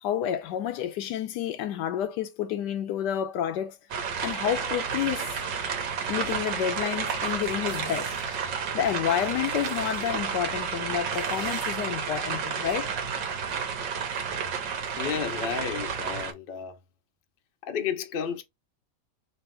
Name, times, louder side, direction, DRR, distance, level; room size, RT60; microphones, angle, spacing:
voice 1, 0.0-3.8 4.2-5.3 6.1-12.9, left 10 dB, 75° left, 1.2 m, -30 dB
sound 1, 3.9-16.3, right 6 dB, 90° right, 1.7 m, -31 dB
sound 2, 7.2-8.4 9.1-10.1 11.1-11.8 12.7-12.8, right 7 dB, 60° right, 1.2 m, -45 dB
voice 2, 15.0-16.8 17.7-18.4, left 7 dB, 50° left, 0.6 m, -32 dB
3.3 x 2.9 x 4.4 m
omnidirectional pair, 1.9 m